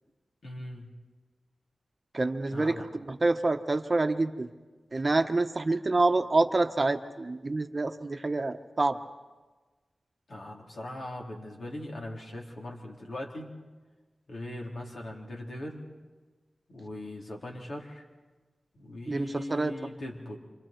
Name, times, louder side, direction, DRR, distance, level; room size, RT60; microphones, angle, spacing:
voice 1, 0.4-0.9 2.5-2.9 10.3-13.5 14.3-15.8 16.7-18.0 18.7-20.4, left 1 dB, 65° left, 0 dB, 3.7 m, -40 dB
voice 2, 2.1-4.5 4.9-9.0 19.1-19.7, right 2 dB, 40° right, 8 dB, 1.0 m, -27 dB
28.5 x 26.5 x 4.5 m, 1.3 s
cardioid pair, 65°, 0 cm